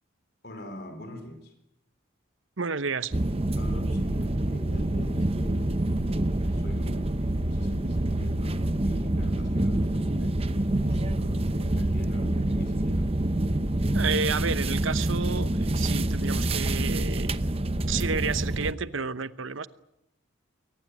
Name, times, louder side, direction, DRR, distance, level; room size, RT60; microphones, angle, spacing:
voice 1, 0.4-1.5 3.6-13.1, left 1 dB, 50° left, 8 dB, 4.3 m, -43 dB
voice 2, 2.6-3.1 13.9-17.4 17.9-19.7, right 5 dB, 70° right, 14 dB, 0.9 m, -31 dB
sound 1, 3.1-18.7, right 1 dB, 30° right, 0.8 m, -27 dB
23.0 x 18.5 x 9.7 m, 0.86 s
head